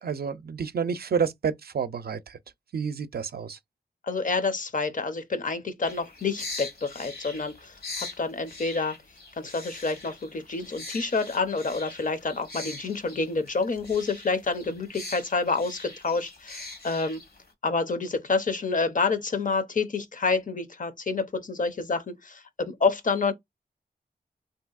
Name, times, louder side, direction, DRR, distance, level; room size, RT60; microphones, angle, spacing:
voice 1, 0.0-2.4 2.7-3.6, right 6 dB, 70° right, 0.4 m, -29 dB
voice 2, 4.0-9.0 9.4-17.2 17.6-23.3, left 4 dB, 55° left, 0.6 m, -28 dB
sound 1, 5.8-17.5, left 2 dB, 70° left, 1.0 m, -42 dB
3.3 x 2.7 x 2.4 m
wide cardioid pair, 90°, 17 cm